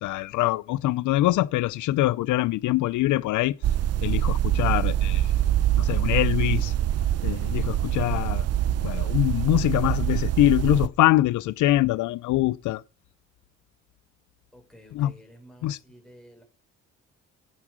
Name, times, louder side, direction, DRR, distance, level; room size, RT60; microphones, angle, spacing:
voice 1, 0.0-3.5 4.0-5.3 5.8-6.7 7.2-8.4 8.8-12.8 15.0-15.1 15.6-15.8, left 15 dB, 75° left, 0.5 m, -24 dB
sound 1, 3.6-10.9, right 12 dB, 55° right, 0.6 m, -24 dB
voice 2, 14.5-16.4, equal, ahead, 4.8 m, -51 dB
9.7 x 7.2 x 6.1 m
cardioid pair, 90°, 30 cm